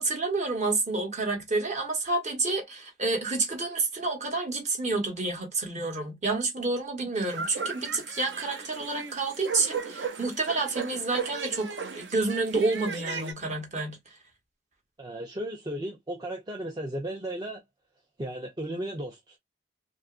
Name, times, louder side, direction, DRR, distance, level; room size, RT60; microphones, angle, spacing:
voice 1, 0.0-14.0, right 3 dB, 40° right, 0.9 m, -29 dB
sound 1, 7.1-13.3, right 5 dB, 70° right, 0.7 m, -36 dB
voice 2, 15.0-17.6 18.2-19.4, right 1 dB, 20° right, 0.4 m, -35 dB
2.8 x 2.4 x 2.3 m
head